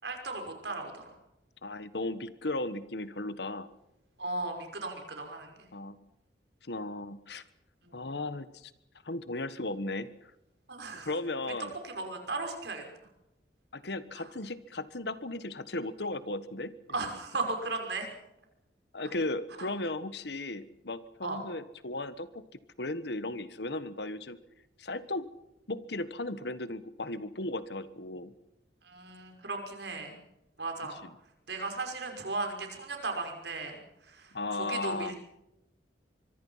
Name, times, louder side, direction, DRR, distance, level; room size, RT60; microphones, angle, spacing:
voice 1, 0.0-1.2 4.2-5.7 7.8-8.0 10.7-11.1 11.4-11.5 11.8-12.8 14.1-14.3 16.9-18.1 19.6-19.7 21.2-21.4 28.8-30.2 30.6-31.0 31.5-35.2, right 3 dB, 70° right, 4 dB, 5.8 m, -36 dB
voice 2, 1.6-3.7 5.7-6.0 6.6-7.4 7.9-8.7 9.0-10.1 10.9-11.7 13.7-16.7 18.9-22.4 22.8-24.4 24.8-25.3 25.7-28.3 31.0-31.1 34.3-35.1, left 2 dB, 65° left, 14 dB, 1.3 m, -36 dB
25.0 x 23.5 x 5.7 m, 0.87 s
head